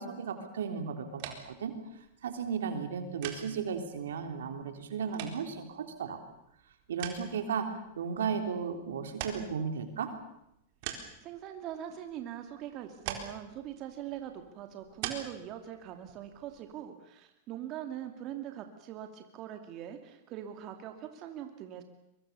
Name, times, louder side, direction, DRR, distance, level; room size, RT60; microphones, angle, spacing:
voice 1, 0.0-1.7 2.2-6.2 6.9-7.7 8.0-10.1, right 6 dB, 80° right, 6 dB, 3.6 m, -35 dB
sound 1, 1.1-16.8, right 9 dB, 55° right, 4.0 m, -46 dB
voice 2, 11.2-21.8, right 11 dB, 40° right, 6 dB, 2.5 m, -42 dB
23.5 x 23.0 x 7.0 m, 0.81 s
hypercardioid pair, 115°, 0 cm